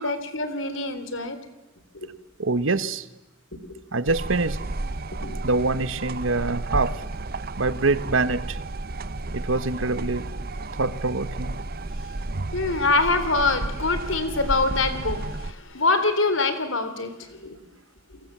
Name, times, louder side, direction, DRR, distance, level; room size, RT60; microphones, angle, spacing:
voice 1, 0.0-1.4 1.9-2.1 3.7-3.8 5.2-5.4 12.5-17.6, left 3 dB, 80° left, 10 dB, 3.5 m, -25 dB
voice 2, 2.4-3.1 3.9-4.6 5.4-7.0 7.6-8.6 9.3-10.3 10.8-11.6, right 3 dB, 85° right, 14 dB, 1.3 m, -25 dB
sound 1, 4.1-15.5, right 2 dB, 50° right, 0.9 m, -32 dB
30.0 x 22.5 x 7.5 m, 0.93 s
head